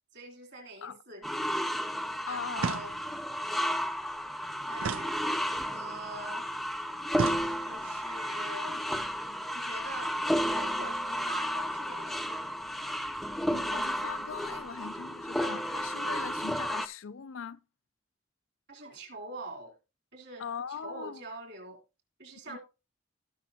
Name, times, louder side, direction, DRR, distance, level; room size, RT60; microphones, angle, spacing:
voice 1, 0.1-1.3 2.3-2.9 4.7-6.5 7.6-8.8 9.5-10.1 10.4-12.4 18.7-19.7 20.1-21.8 22.2-22.6, right 2 dB, 60° right, 3.4 m, -44 dB
sound 1, 1.2-16.9, equal, ahead, 0.5 m, -33 dB
voice 2, 2.3-2.8 13.5-17.6 20.4-21.2 22.5-22.6, left 6 dB, 85° left, 0.5 m, -40 dB
sound 2, 2.6-3.3 4.8-5.8 7.1-8.0, right 6 dB, 90° right, 0.5 m, -36 dB
17.5 x 6.0 x 2.8 m
head